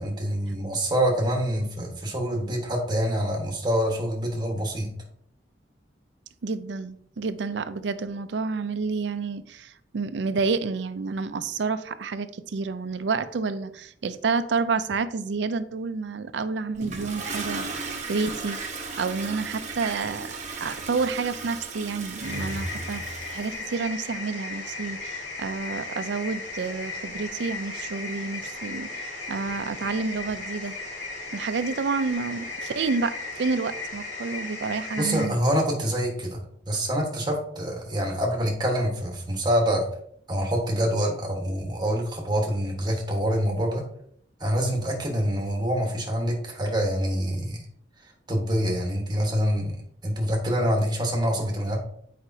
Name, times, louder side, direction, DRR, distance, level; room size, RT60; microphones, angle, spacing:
voice 1, 0.0-4.9 34.9-36.4 36.7-39.9 40.3-43.8 44.4-47.6 48.3-49.8 50.0-51.8, equal, 25° right, 1 dB, 1.3 m, -26 dB
voice 2, 6.4-18.6 19.0-30.7 31.3-35.4, right 4 dB, 75° right, 12 dB, 0.5 m, -29 dB
Toilet flush, 16.8-23.6, right 3 dB, 40° right, 1.0 m, -35 dB
sound 1, 22.2-35.3, left 3 dB, 80° left, 2.0 m, -36 dB
8.0 x 5.0 x 2.7 m, 0.66 s
head